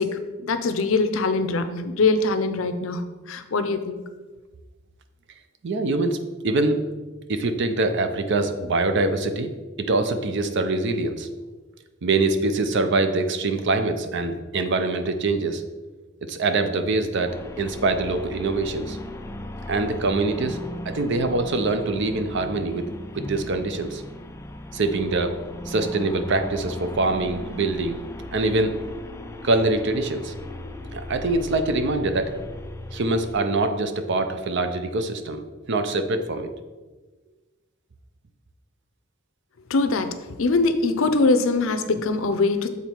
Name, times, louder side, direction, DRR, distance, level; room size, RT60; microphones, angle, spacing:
voice 1, 0.0-4.0 39.7-42.7, left 3 dB, 70° left, 9 dB, 0.6 m, -23 dB
voice 2, 5.6-6.2 6.4-6.8 7.3-9.5 9.8-11.3 12.0-15.6 16.2-19.0 19.7-20.6 20.8-22.9 23.1-24.0 24.7-25.3 25.7-28.0 28.3-28.8 29.4-30.3 30.9-32.3 32.9-36.5, right 2 dB, 60° right, 8 dB, 0.6 m, -24 dB
sound 1, 17.3-33.4, left 1 dB, 15° left, 0.3 m, -37 dB
7.2 x 4.0 x 4.5 m, 1.3 s
head